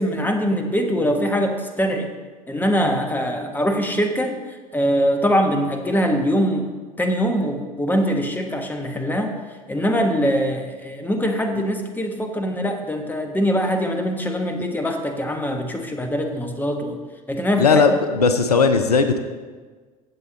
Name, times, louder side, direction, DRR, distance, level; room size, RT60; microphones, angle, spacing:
voice 1, 0.0-2.1 2.5-4.3 4.7-6.7 7.0-9.4 9.7-17.0 17.3-17.7, equal, 10° left, 4 dB, 1.3 m, -22 dB
voice 2, 17.6-19.2, left 4 dB, 85° left, 8 dB, 0.6 m, -17 dB
15.5 x 7.8 x 3.1 m, 1.4 s
figure-of-eight pair, 70°, 19 cm